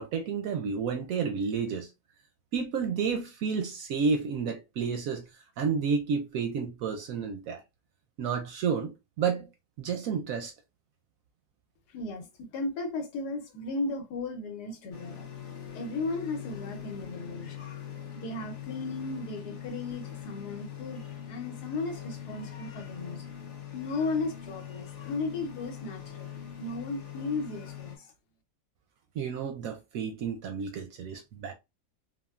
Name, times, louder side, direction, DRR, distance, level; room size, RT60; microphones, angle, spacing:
voice 1, 0.0-1.9 2.5-5.2 5.6-7.6 8.2-9.5 9.8-10.5 29.2-31.5, right 5 dB, 70° right, 0.8 m, -31 dB
voice 2, 11.9-15.3 15.7-17.8 18.1-23.3 23.7-26.3 26.6-28.1, left 3 dB, 75° left, 1.2 m, -35 dB
sound 1, 14.9-28.0, left 9 dB, 50° left, 0.6 m, -42 dB
3.5 x 2.1 x 2.2 m
omnidirectional pair, 1.8 m